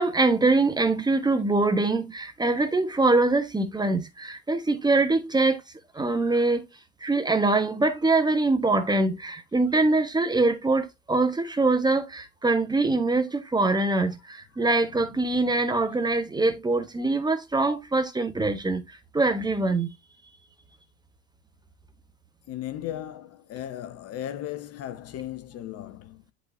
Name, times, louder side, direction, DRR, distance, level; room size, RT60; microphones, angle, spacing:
voice 1, 0.0-5.6 5.9-6.6 7.0-19.9, right 3 dB, 10° right, 1.1 m, -23 dB
voice 2, 15.3-15.7 22.5-26.2, left 12 dB, 35° left, 0.9 m, -36 dB
10.5 x 4.3 x 2.6 m
hypercardioid pair, 85°, 41 cm